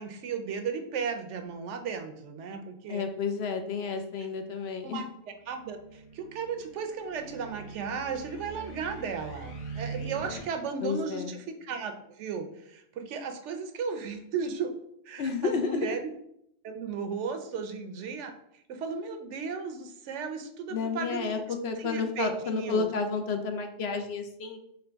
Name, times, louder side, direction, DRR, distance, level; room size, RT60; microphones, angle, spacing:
voice 1, 0.0-3.1 4.2-4.3 4.8-14.7 15.1-16.1 16.6-18.3 18.7-21.3 21.8-22.9, right 5 dB, 75° right, 6 dB, 0.9 m, -35 dB
voice 2, 2.9-5.0 10.8-11.3 15.2-16.0 20.7-24.6, left 5 dB, 65° left, 6 dB, 0.8 m, -31 dB
sound 1, 5.4-10.4, right 4 dB, 85° left, 1.2 m, -42 dB
5.0 x 3.1 x 3.4 m, 0.75 s
omnidirectional pair, 1.2 m